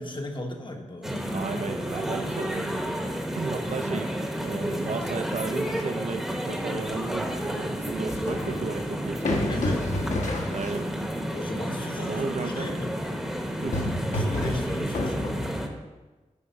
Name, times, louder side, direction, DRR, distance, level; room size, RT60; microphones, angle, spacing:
voice 1, 0.0-1.2 9.3-10.0 11.3-13.0 14.1-15.3, left 1 dB, 40° left, 3 dB, 1.0 m, -35 dB
sound 1, 1.0-15.7, equal, 5° right, 0.9 m, -31 dB
voice 2, 1.3-2.9 3.3-4.1 4.4-9.4 10.5-10.9 12.0-12.8 13.6-13.8, right 4 dB, 65° right, 8 dB, 0.5 m, -34 dB
sound 2, 8.1-11.0 13.4-15.7, left 1 dB, 70° left, 1.1 m, -30 dB
8.4 x 4.7 x 5.3 m, 1.2 s
wide cardioid pair, 115°, 13 cm